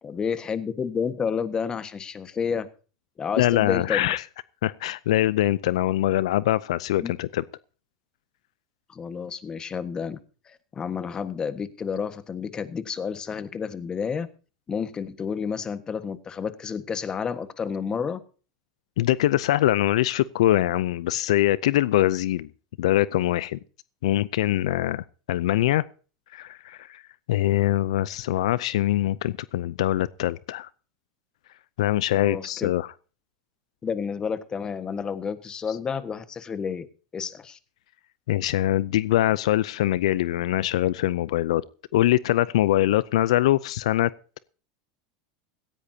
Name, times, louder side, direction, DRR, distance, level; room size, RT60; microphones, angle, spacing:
voice 1, 0.0-2.7 3.2-4.2 7.0-7.1 8.9-10.2 10.5-14.3 14.7-18.2 32.1-32.7 33.8-36.9 37.1-37.6, left 6 dB, 25° left, 12 dB, 1.5 m, -30 dB
voice 2, 3.4-4.2 4.6-7.4 19.0-22.5 22.8-23.6 24.0-25.8 26.3-27.0 27.3-30.7 31.8-32.9 38.3-41.6 41.9-44.1, left 14 dB, 80° left, 19 dB, 0.5 m, -23 dB
17.0 x 15.5 x 2.8 m, 0.38 s
supercardioid pair, 115°, 3 cm